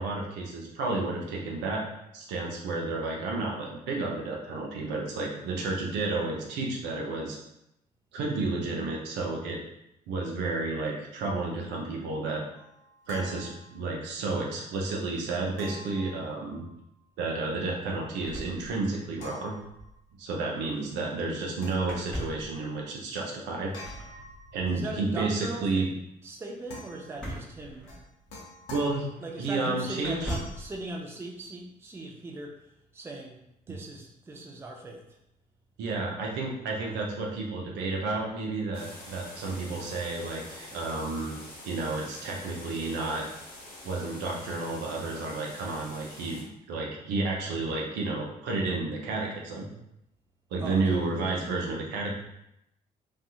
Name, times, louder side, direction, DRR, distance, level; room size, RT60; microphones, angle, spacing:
voice 1, 0.0-1.8 2.1-7.4 8.1-9.6 10.1-12.4 13.1-16.6 17.2-19.6 20.2-23.7 24.5-25.9 28.7-29.1 29.4-30.3 35.8-41.4 41.6-43.3 43.8-49.7 50.5-52.1, right 3 dB, 60° right, -1 dB, 0.6 m, -31 dB
sound 1, 12.5-14.1 15.6-17.0 19.2-20.2 21.6-22.6 23.7-25.1 26.7-27.3 27.9-29.4 30.2-30.7, left 2 dB, 70° left, 0.7 m, -47 dB
sound 2, 18.2-19.3 19.5-19.6 19.8-20.0 21.8-22.6 23.8-24.2 27.1-28.3 29.2-29.3 30.0-30.7, equal, 5° left, 0.9 m, -39 dB
voice 2, 24.7-25.8 26.2-27.9 29.2-32.5 32.9-33.4 33.7-35.0 50.6-51.3, right 2 dB, 10° right, 0 dB, 0.4 m, -39 dB
sound 3, 38.7-46.4, left 1 dB, 50° left, 1.0 m, -46 dB
2.6 x 2.5 x 2.3 m, 0.82 s
figure-of-eight pair, 45°, 21 cm